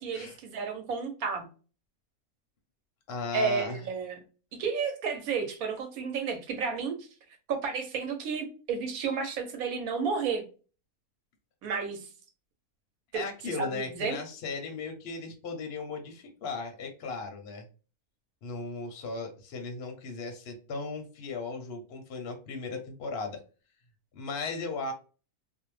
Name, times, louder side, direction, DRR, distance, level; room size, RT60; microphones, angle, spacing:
voice 1, 0.0-1.5 3.3-4.2 4.6-7.0 7.5-10.4 11.6-12.1 13.1-13.2 13.6-14.2, right 5 dB, 75° right, 5 dB, 1.1 m, -31 dB
voice 2, 3.1-3.8 13.1-17.7 18.4-23.4 24.1-24.9, left 4 dB, 60° left, 3 dB, 0.7 m, -37 dB
2.5 x 2.0 x 3.0 m, 0.36 s
omnidirectional pair, 1.6 m